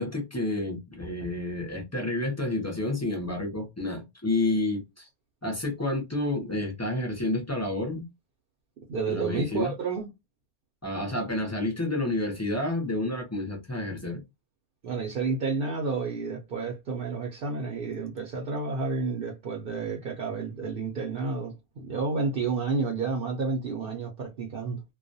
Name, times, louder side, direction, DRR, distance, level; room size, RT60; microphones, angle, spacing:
voice 1, 0.0-5.1 5.4-8.1 9.1-9.7 10.8-14.2, left 2 dB, 20° left, 0.4 m, -30 dB
voice 2, 8.9-10.1 14.8-24.8, right 4 dB, 60° right, 0.7 m, -30 dB
2.3 x 2.1 x 2.5 m
omnidirectional pair, 1.1 m